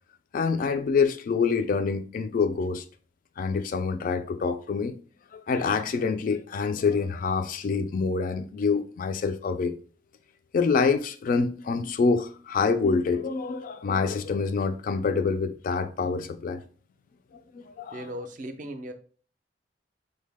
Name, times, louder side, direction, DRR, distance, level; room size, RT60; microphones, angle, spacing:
voice 1, 0.3-2.8 3.4-4.9 5.3-9.7 10.5-16.6 17.5-18.1, left 5 dB, 50° left, 0.3 m, -26 dB
voice 2, 17.9-18.9, equal, 45° right, 0.4 m, -37 dB
3.9 x 2.2 x 3.3 m
head